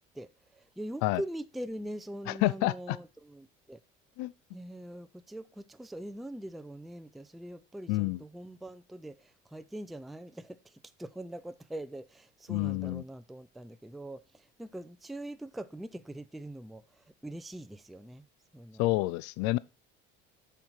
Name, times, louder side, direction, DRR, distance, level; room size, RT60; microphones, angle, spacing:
voice 1, 0.1-3.8 4.5-18.3 18.5-18.8, right 1 dB, ahead, 0.4 m, -43 dB
voice 2, 2.4-3.0 4.2-4.3 7.9-8.2 12.5-13.0 18.8-19.6, left 19 dB, 70° left, 0.4 m, -28 dB
7.7 x 5.7 x 4.6 m
supercardioid pair, 85°, 29 cm